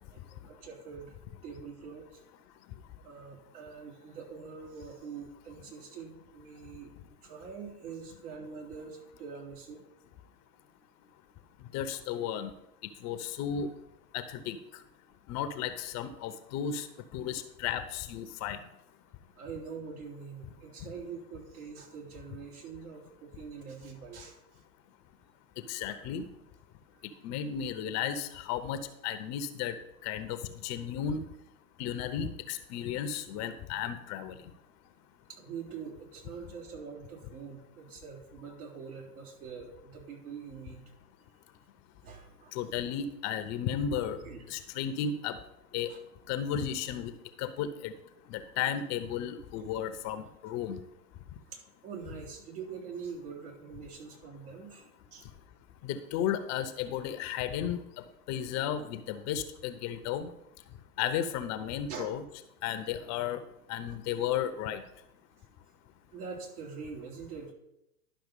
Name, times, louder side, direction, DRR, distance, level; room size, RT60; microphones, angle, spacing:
voice 1, 0.5-1.1 1.4-2.2 3.0-6.9 7.2-9.8 19.4-24.4 35.3-40.8 42.0-42.5 44.2-44.6 45.9-46.0 51.5-55.3 61.9-62.1 66.1-67.5, right 6 dB, 70° right, -1 dB, 3.7 m, -44 dB
voice 2, 11.7-12.5 13.0-13.7 14.1-14.6 15.3-16.9 17.1-18.6 25.7-26.2 27.2-29.8 30.0-31.2 31.8-34.4 42.5-44.2 44.5-45.4 45.7-45.9 46.3-47.1 47.4-47.9 48.3-50.8 55.8-60.3 61.0-62.2 62.6-63.4 63.7-64.8, left 9 dB, 35° left, 11 dB, 0.8 m, -34 dB
11.5 x 5.8 x 5.3 m, 0.84 s
hypercardioid pair, 110°, 46 cm